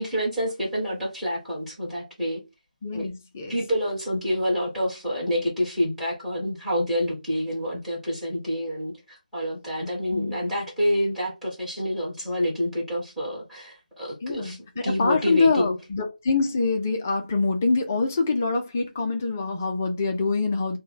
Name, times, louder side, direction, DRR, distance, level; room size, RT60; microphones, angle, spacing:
voice 1, 0.0-2.4 2.9-3.1 3.5-14.6 14.8-15.7, equal, ahead, 1.5 m, -27 dB
voice 2, 2.8-3.6 10.1-10.4 14.2-20.8, left 4 dB, 15° left, 0.4 m, -25 dB
4.4 x 2.2 x 3.6 m
figure-of-eight pair, 160°, 5 cm